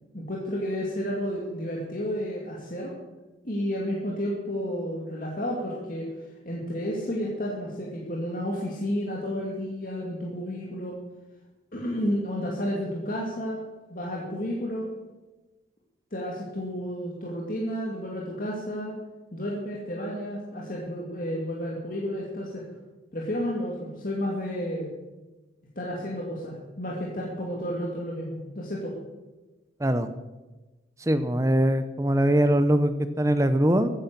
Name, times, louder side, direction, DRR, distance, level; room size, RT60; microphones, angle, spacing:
voice 1, 0.1-2.9 3.4-6.1 6.5-11.0 11.7-13.6 13.9-14.9 16.1-19.0 19.3-22.6 23.1-24.9 25.8-28.9, equal, 45° left, -3 dB, 2.4 m, -31 dB
voice 2, 31.1-33.9, right 1 dB, 15° right, 11 dB, 0.7 m, -22 dB
14.0 x 10.0 x 6.8 m, 1.1 s
head